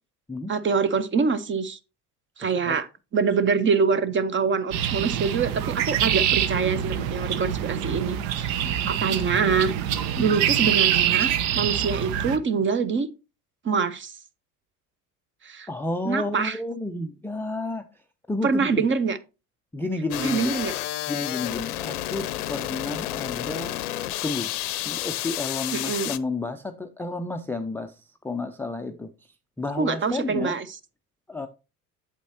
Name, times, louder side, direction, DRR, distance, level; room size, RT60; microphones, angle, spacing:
voice 1, 0.5-1.8 2.4-2.9 3.1-8.5 8.9-9.7 10.2-13.1 13.6-14.1 15.4-15.7 16.0-16.6 18.4-19.2 20.2-20.7 25.7-26.1 29.8-30.6, right 5 dB, 25° right, 0.7 m, -25 dB
voice 2, 2.4-2.8 8.6-8.9 10.2-10.3 15.7-17.8 18.3-18.9 19.7-20.5 21.1-23.8 24.2-24.5 24.9-28.0 28.2-29.1 29.6-30.6 31.3-31.5, left 2 dB, 5° left, 0.4 m, -31 dB
sound 1, 4.7-12.4, right 10 dB, 60° right, 0.8 m, -25 dB
sound 2, 20.1-26.2, left 15 dB, 75° left, 0.6 m, -30 dB
8.3 x 7.6 x 2.8 m
hypercardioid pair, 70°, 45 cm